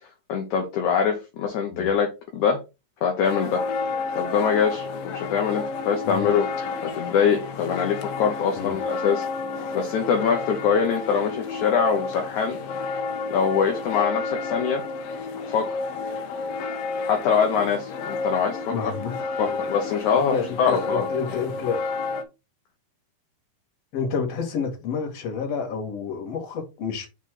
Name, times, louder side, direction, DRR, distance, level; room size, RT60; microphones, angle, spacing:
voice 1, 0.3-2.6 3.0-3.6 4.2-6.5 6.8-9.2 9.7-12.6 13.3-14.8 15.5-15.7 17.1-18.9 19.4-21.4, left 6 dB, 70° left, 2.3 m, -24 dB
sound 1, 3.2-22.2, left 4 dB, 85° left, 2.7 m, -31 dB
voice 2, 18.7-19.6 20.3-21.9 23.9-27.1, left 6 dB, 55° left, 2.5 m, -29 dB
6.0 x 4.4 x 4.3 m
omnidirectional pair, 4.0 m